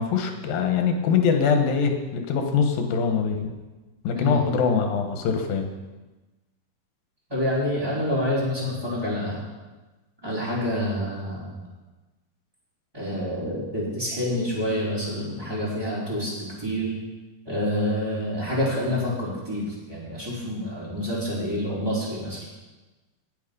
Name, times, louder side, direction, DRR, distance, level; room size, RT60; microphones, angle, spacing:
voice 1, 0.0-3.5 4.0-5.7, left 6 dB, 80° left, 5 dB, 3.1 m, -23 dB
voice 2, 7.3-9.4 10.2-11.6 12.9-16.3 16.6-16.9 17.5-22.5, left 1 dB, 5° right, -7 dB, 3.9 m, -27 dB
18.5 x 6.5 x 5.4 m, 1.2 s
omnidirectional pair, 4.0 m